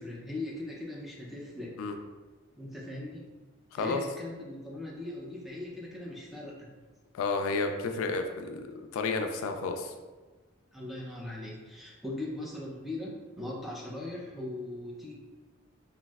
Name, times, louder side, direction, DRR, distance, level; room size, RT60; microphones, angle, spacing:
voice 1, 0.0-1.8 2.6-3.2 3.7-6.7 10.7-15.1, left 2 dB, ahead, -4 dB, 0.4 m, -39 dB
voice 2, 3.7-4.0 7.1-9.9, left 3 dB, 90° left, 5 dB, 0.3 m, -31 dB
3.1 x 2.5 x 2.3 m, 1.3 s
head